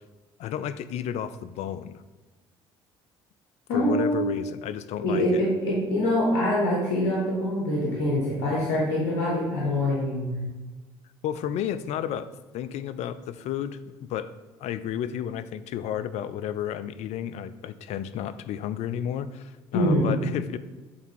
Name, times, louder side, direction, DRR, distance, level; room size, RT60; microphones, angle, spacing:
voice 1, 0.4-2.0 3.7-5.4 11.2-12.3 12.5-14.3 14.6-20.6, left 10 dB, 65° left, 14 dB, 0.5 m, -32 dB
voice 2, 3.7-4.3 5.0-10.4 19.7-20.2, left 1 dB, 85° left, -4 dB, 1.5 m, -24 dB
8.6 x 3.9 x 4.4 m, 1.2 s
hypercardioid pair, 65°, 12 cm